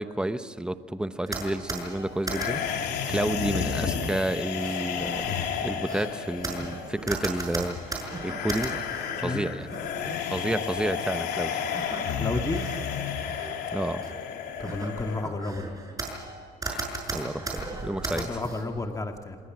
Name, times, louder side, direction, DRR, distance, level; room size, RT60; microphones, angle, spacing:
voice 1, 0.0-5.3 5.6-8.8 9.2-9.7 10.3-11.6 13.7-14.1 16.7-18.4, right 1 dB, 5° right, 11 dB, 1.0 m, -31 dB
sound 1, 1.2-2.8 3.3-3.9 4.5-9.2 9.6-10.1 11.1-11.2 11.7-12.8 13.2-13.5 14.0-14.1 14.6-16.3 16.6-18.7, right 3 dB, 20° right, 6.4 m, -36 dB
sound 2, 2.2-15.2, left 7 dB, 80° left, 2.9 m, -32 dB
voice 2, 12.2-12.6 14.6-15.7 18.1-19.4, left 2 dB, 20° left, 4 dB, 2.0 m, -31 dB
28.5 x 21.0 x 6.2 m, 2.3 s
cardioid pair, 110°, 17 cm